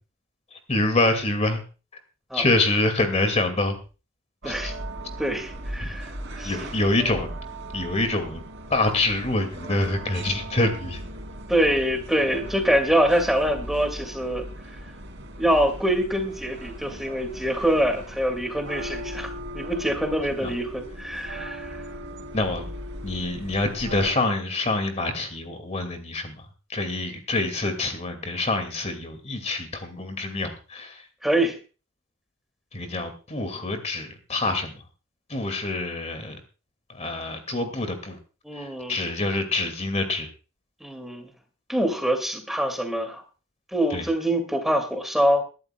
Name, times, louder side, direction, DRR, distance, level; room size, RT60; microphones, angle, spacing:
voice 1, 0.7-1.6 2.3-3.8 4.5-4.7 5.8-5.9 6.4-7.3 7.7-8.4 8.7-11.0 20.4-20.5 22.3-22.7 23.0-26.4 26.7-31.0 32.7-34.8 35.3-36.4 37.0-38.2 38.6-40.3 43.9-44.0, left 2 dB, 35° left, 7 dB, 2.1 m, -26 dB
sound 1, 4.4-24.1, right 1 dB, 65° right, 3.0 m, -38 dB
voice 2, 5.2-6.7 11.5-14.5 15.4-21.8 31.2-31.6 38.4-39.0 40.8-41.3 41.7-43.2 43.7-45.4, right 1 dB, ahead, 6 dB, 2.3 m, -25 dB
22.0 x 12.0 x 2.2 m, 0.34 s
head